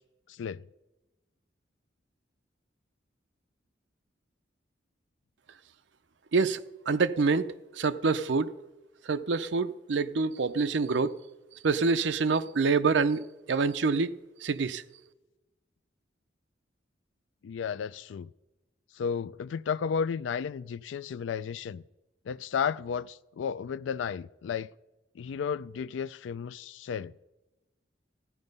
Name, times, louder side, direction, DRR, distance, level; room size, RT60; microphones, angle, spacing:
voice 1, 0.3-0.6 17.4-18.3 19.0-21.8 22.3-24.7 25.2-27.1, left 6 dB, 90° left, 0.3 m, -33 dB
voice 2, 6.9-7.4 7.8-8.5 9.1-11.2 11.6-14.1 14.4-14.8, right 4 dB, 80° right, 0.6 m, -26 dB
15.0 x 9.8 x 5.3 m
head